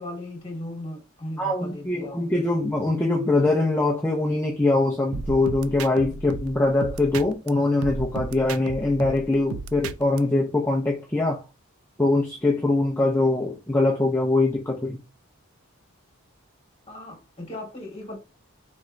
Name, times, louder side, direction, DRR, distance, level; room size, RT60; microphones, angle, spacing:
voice 1, 0.0-2.6 16.9-18.2, left 1 dB, 25° left, 1.7 m, -37 dB
voice 2, 1.4-11.5 12.0-15.0, left 2 dB, 10° left, 0.6 m, -23 dB
sound 1, 5.1-7.5 7.8-10.2, right 5 dB, 75° right, 0.4 m, -34 dB
4.3 x 3.4 x 2.5 m
head